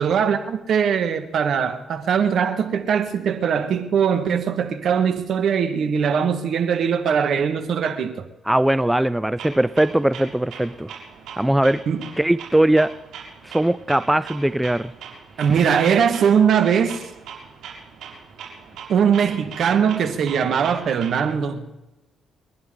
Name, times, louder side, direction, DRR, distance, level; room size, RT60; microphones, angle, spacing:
voice 1, 0.0-8.2 11.9-12.0 15.4-17.0 18.9-21.6, right 7 dB, 65° right, 1.7 m, -21 dB
voice 2, 8.5-10.9 11.4-11.8 12.2-12.9 13.4-14.9, right 1 dB, 10° right, 0.4 m, -20 dB
Clock, 9.4-21.4, right 6 dB, 85° right, 6.4 m, -41 dB
30.0 x 11.0 x 3.9 m
cardioid pair, 90°, 0 cm